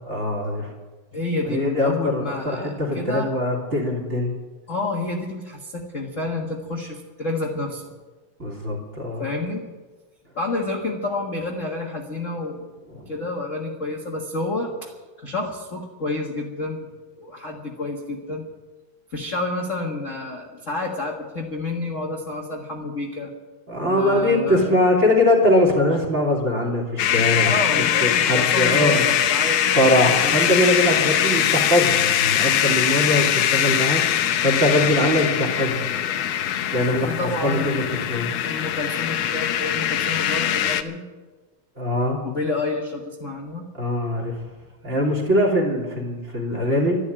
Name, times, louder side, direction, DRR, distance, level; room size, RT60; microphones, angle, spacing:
voice 1, 0.1-0.7 1.5-4.3 8.4-9.2 12.9-13.1 23.7-27.5 28.0-29.1 29.8-34.0 34.4-35.8 36.7-37.7 38.1-38.3 41.8-42.2 43.7-44.4 44.8-47.0, left 1 dB, 25° right, 0 dB, 3.1 m, -22 dB
voice 2, 1.1-3.3 4.7-7.8 9.2-9.7 10.3-12.7 13.1-14.9 15.2-16.9 17.1-18.4 19.1-23.3 23.9-24.7 27.5-30.3 37.0-37.9 38.4-41.0 42.2-43.6, left 2 dB, 35° left, 0 dB, 1.5 m, -29 dB
sound 1, 27.0-40.8, left 10 dB, 85° left, 1.1 m, -22 dB
13.0 x 11.5 x 8.9 m, 1.3 s
omnidirectional pair, 3.3 m